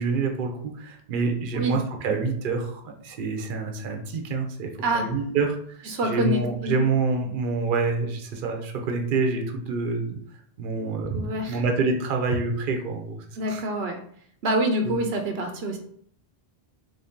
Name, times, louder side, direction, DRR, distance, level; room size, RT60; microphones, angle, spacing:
voice 1, 0.0-10.2 10.6-13.2 13.5-13.6 14.8-14.9, right 4 dB, 60° right, 3 dB, 0.8 m, -27 dB
voice 2, 5.9-6.8 11.1-11.6 13.4-14.0 14.4-15.8, right 1 dB, 90° right, 4 dB, 0.9 m, -26 dB
3.5 x 2.7 x 3.5 m, 0.63 s
omnidirectional pair, 1.0 m